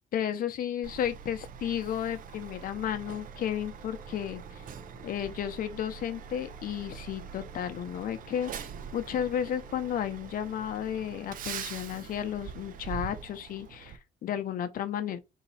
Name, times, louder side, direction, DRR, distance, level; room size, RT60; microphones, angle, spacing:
voice 1, 0.1-4.6 5.0-8.7 8.9-15.2, left 9 dB, 60° left, 0.7 m, -33 dB
Truck, 0.8-14.0, right 8 dB, 55° right, 0.6 m, -44 dB
sound 1, 1.8-13.4, equal, 15° left, 1.1 m, -56 dB
4.0 x 2.8 x 4.1 m
cardioid pair, 110°, 17 cm